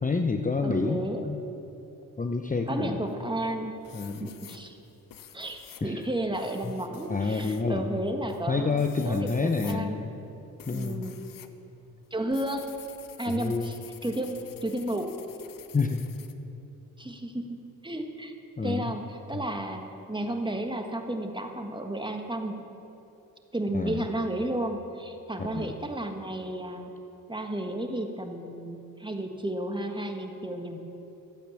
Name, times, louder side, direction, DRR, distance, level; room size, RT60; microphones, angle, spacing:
voice 1, 0.0-1.0 1.2-1.4 2.2-3.0 3.9-4.3 5.8-6.0 6.6-6.7 7.1-8.0 8.5-10.1 10.7-11.1 13.3-13.7 15.7-16.1 18.6-18.9 19.3-19.4 23.7-24.0 25.4-25.7, left 4 dB, 20° left, 4 dB, 0.8 m, -28 dB
voice 2, 0.6-1.2 2.7-3.8 4.2-4.8 5.3-10.0 10.7-11.1 12.1-12.6 13.2-13.8 14.0-15.1 17.0-17.6 17.8-18.3 18.6-22.6 23.5-26.9 27.3-30.8, right 1 dB, 10° right, 4 dB, 1.6 m, -32 dB
sound 1, 3.1-3.5 3.8-11.5 11.8-16.3, left 10 dB, 60° left, 0.9 m, -50 dB
14.0 x 8.6 x 7.2 m, 3.0 s
supercardioid pair, 60°, 38 cm